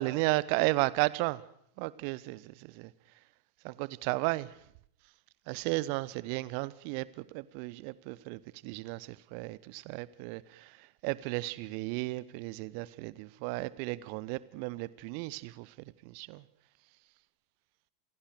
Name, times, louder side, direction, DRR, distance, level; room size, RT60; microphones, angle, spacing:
voice 1, 0.0-1.4 1.8-2.9 3.6-4.5 5.5-10.8 11.0-15.7 16.0-16.4, right 21 dB, 45° right, 0.9 m, -34 dB
27.5 x 17.5 x 6.7 m
figure-of-eight pair, 90°, 0 cm